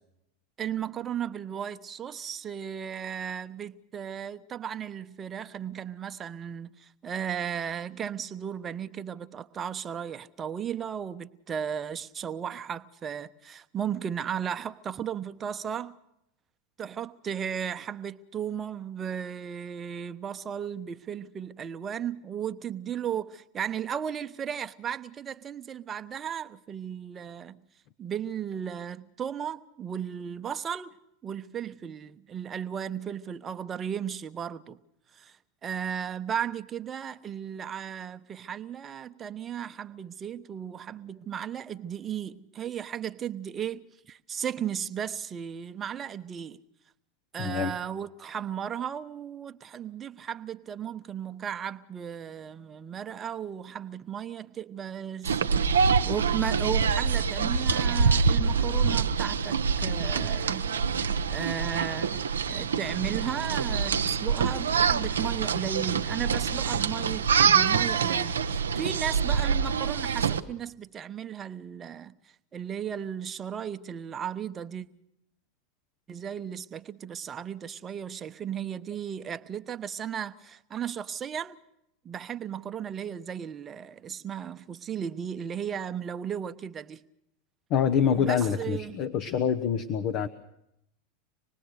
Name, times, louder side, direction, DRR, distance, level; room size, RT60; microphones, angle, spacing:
voice 1, 0.6-15.9 16.8-27.6 28.0-31.0 31.2-34.8 35.1-35.4 35.6-46.6 47.3-60.7 61.3-62.1 62.5-72.1 72.5-74.9 76.1-81.6 82.0-87.0 88.1-89.0, right 8 dB, 25° right, 1.0 m, -35 dB
voice 2, 47.4-47.8 87.7-90.3, left 7 dB, 45° left, 1.2 m, -26 dB
sound 1, 55.2-70.4, right 6 dB, 75° right, 0.9 m, -25 dB
26.0 x 20.0 x 6.7 m
figure-of-eight pair, 85°, 0 cm